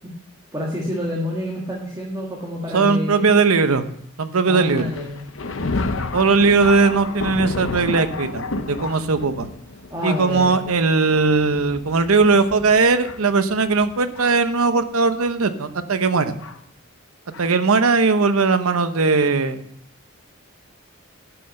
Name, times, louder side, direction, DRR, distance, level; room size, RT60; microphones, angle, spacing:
voice 1, 0.5-3.2 4.5-5.2 9.9-10.5, left 1 dB, 15° right, -4 dB, 1.8 m, -28 dB
voice 2, 2.7-3.9 4.2-4.9 6.1-9.5 10.0-16.4 17.4-19.6, right 4 dB, 85° right, 10 dB, 0.8 m, -19 dB
Thunder, 4.6-14.5 15.3-15.4 16.4-16.6 17.3-17.5, left 3 dB, 65° left, 0.8 m, -31 dB
11.5 x 5.7 x 6.4 m, 0.71 s
head